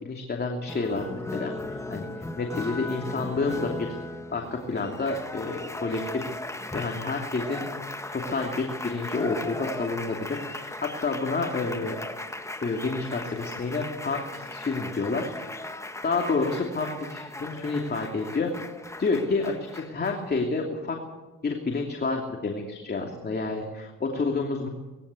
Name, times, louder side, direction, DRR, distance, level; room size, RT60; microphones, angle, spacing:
voice 1, 0.0-3.9 4.3-6.4 6.7-7.7 8.1-12.0 12.6-15.6 16.0-18.5 19.0-21.0 21.4-24.7, left 3 dB, 35° left, 2 dB, 2.8 m, -29 dB
Applause, 0.7-20.4, left 2 dB, 10° left, 1.5 m, -37 dB
19.5 x 16.0 x 8.4 m, 1.2 s
cardioid pair, 90°, 30 cm